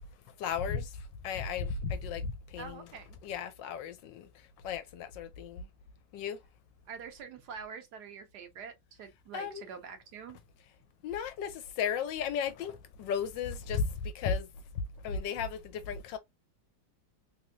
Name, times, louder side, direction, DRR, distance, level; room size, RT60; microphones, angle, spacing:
voice 1, 0.4-2.8 3.2-5.7 6.1-6.4 9.3-9.7 11.0-14.5 15.0-16.2, left 6 dB, 80° left, 1.2 m, -35 dB
voice 2, 2.6-3.2 6.9-10.4, right 6 dB, 65° right, 1.1 m, -45 dB
3.5 x 2.9 x 2.5 m
omnidirectional pair, 2.1 m